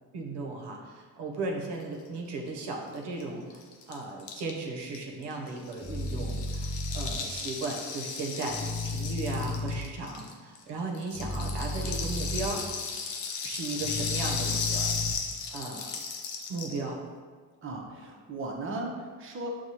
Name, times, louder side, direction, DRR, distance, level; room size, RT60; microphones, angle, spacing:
voice 1, 0.1-12.6 13.4-14.9 15.5-15.9 16.5-17.0, right 3 dB, 65° right, 0 dB, 0.8 m, -36 dB
Rattle (instrument), 2.9-3.0 3.2-3.3 3.5-10.6 10.9-16.8, left 5 dB, 75° left, 0.7 m, -35 dB
sound 1, 5.8-7.1 8.5-9.8 11.1-12.5 13.8-15.1, left 2 dB, 10° left, 0.4 m, -33 dB
voice 2, 17.6-19.5, right 2 dB, 30° right, 0 dB, 0.7 m, -36 dB
5.9 x 2.3 x 2.8 m, 1.5 s
supercardioid pair, 55°, 43 cm